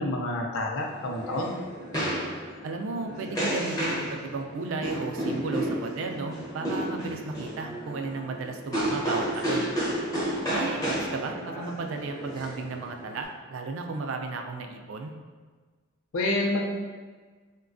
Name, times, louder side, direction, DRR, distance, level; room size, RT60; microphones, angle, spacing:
voice 1, 0.0-1.5 16.1-16.6, left 2 dB, 70° left, 0 dB, 0.4 m, -28 dB
sound 1, 0.8-13.2, right 1 dB, 15° left, 0.6 m, -32 dB
voice 2, 2.6-9.7 10.5-15.1, right 3 dB, 65° right, 4 dB, 0.3 m, -34 dB
3.9 x 2.2 x 2.5 m, 1.4 s
head